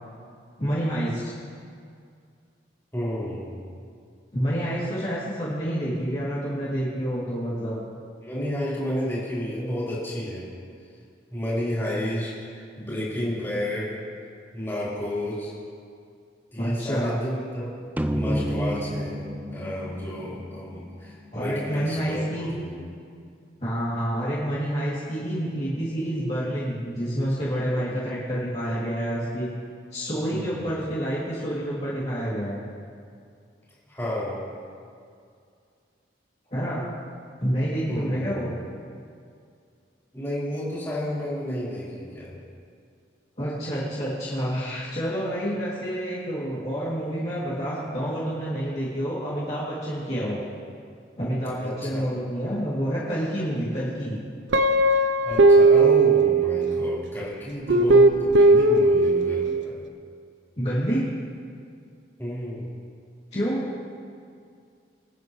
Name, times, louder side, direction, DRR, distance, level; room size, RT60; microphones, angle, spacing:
voice 1, 0.6-1.2 4.3-7.8 16.6-17.2 21.3-22.5 23.6-29.5 29.9-32.6 36.5-36.8 37.4-38.5 43.4-50.4 51.2-54.2 60.6-61.0 63.3-63.6, equal, 35° left, -10 dB, 2.6 m, -28 dB
voice 2, 2.9-3.6 8.2-10.5 11.3-14.0 14.5-15.5 16.5-17.7 18.1-22.8 30.3-30.6 33.9-34.5 37.9-38.4 40.1-42.4 51.6-52.0 55.2-59.9 62.2-62.7, left 1 dB, 15° left, -8 dB, 4.1 m, -31 dB
sound 1, 18.0-21.5, equal, 10° right, 0.4 m, -30 dB
Guitar, 54.5-57.0 57.7-59.6, right 2 dB, 80° right, 0.6 m, -18 dB
25.5 x 9.6 x 3.2 m, 2.3 s
head